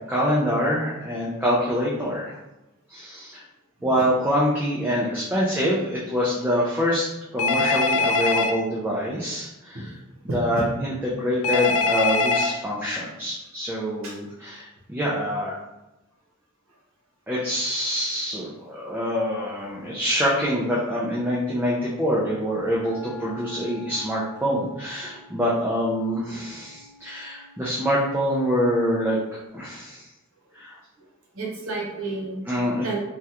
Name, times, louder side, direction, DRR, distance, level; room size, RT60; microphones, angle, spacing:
voice 1, 0.0-2.4 2.9-3.4 3.8-7.1 7.3-9.9 10.3-15.6 17.3-29.2 29.5-30.1 30.5-30.8 32.5-33.0, equal, 10° right, -6 dB, 0.4 m, -25 dB
Telephone, 7.4-8.5 11.4-12.5, left 3 dB, 70° left, 0.3 m, -22 dB
voice 2, 10.3-10.7 14.0-14.2 16.7-16.8 30.4-30.6 31.0-31.1 31.3-32.4 32.8-33.0, right 2 dB, 70° right, -2 dB, 0.9 m, -32 dB
Wind instrument woodwind instrument, 22.6-29.3, left 4 dB, 45° right, 1.3 m, -46 dB
3.4 x 2.3 x 2.8 m, 0.95 s
head